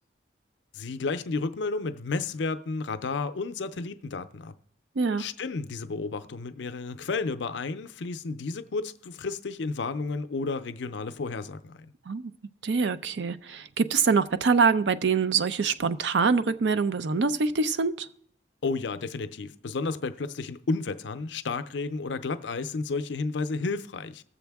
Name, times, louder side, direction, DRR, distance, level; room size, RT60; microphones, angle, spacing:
voice 1, 0.7-4.5 5.2-11.9 18.6-24.2, left 3 dB, 75° left, 0.5 m, -32 dB
voice 2, 12.6-18.1, right 5 dB, 75° right, 0.5 m, -24 dB
18.0 x 7.2 x 3.5 m
head